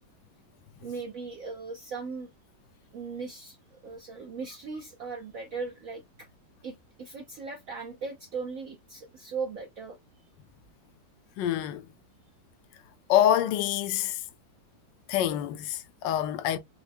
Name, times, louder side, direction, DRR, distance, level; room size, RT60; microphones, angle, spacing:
voice 1, 0.8-2.3 2.9-6.3 6.6-10.0, right 4 dB, 70° right, 0.8 m, -38 dB
voice 2, 11.4-11.9 13.1-14.2 15.1-16.6, left 11 dB, 75° left, 1.2 m, -26 dB
4.5 x 2.0 x 2.6 m
omnidirectional pair, 2.1 m